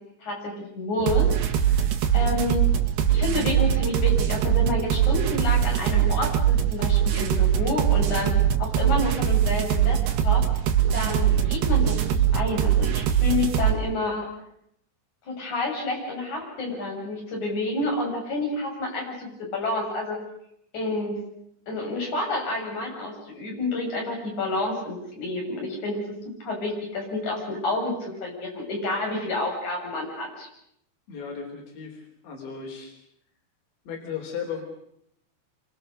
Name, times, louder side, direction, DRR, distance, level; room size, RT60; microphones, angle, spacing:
voice 1, 0.2-1.3 1.6-2.7 3.1-8.3 8.6-10.6 10.9-14.3 15.3-20.2 20.7-21.2 21.7-30.5, left 2 dB, 45° left, 0 dB, 8.7 m, -29 dB
sound 1, 1.0-13.7, right 10 dB, 75° right, 4.0 m, -22 dB
voice 2, 31.1-32.9 33.9-34.6, left 6 dB, 85° left, 2 dB, 5.9 m, -35 dB
27.5 x 25.0 x 6.7 m, 0.75 s
omnidirectional pair, 4.9 m